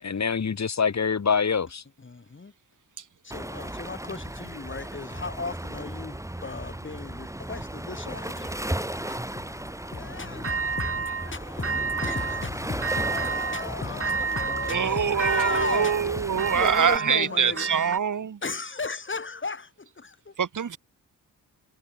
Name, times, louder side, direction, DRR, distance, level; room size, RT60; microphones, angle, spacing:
voice 1, 0.0-1.8, left 6 dB, 50° left, 5.7 m, -25 dB
voice 2, 2.0-2.5 3.2-17.7 18.4-20.3, left 4 dB, 35° left, 6.7 m, -35 dB
Waves surf, 3.3-17.0, right 1 dB, 10° right, 4.4 m, -36 dB
závory na přejezdu, 10.4-11.3 11.6-12.5 12.8-13.7 14.0-18.0, right 5 dB, 40° right, 2.9 m, -30 dB
voice 3, 14.7-18.4 20.4-20.8, right 7 dB, 60° right, 4.5 m, -24 dB
cardioid pair, 65°, 35 cm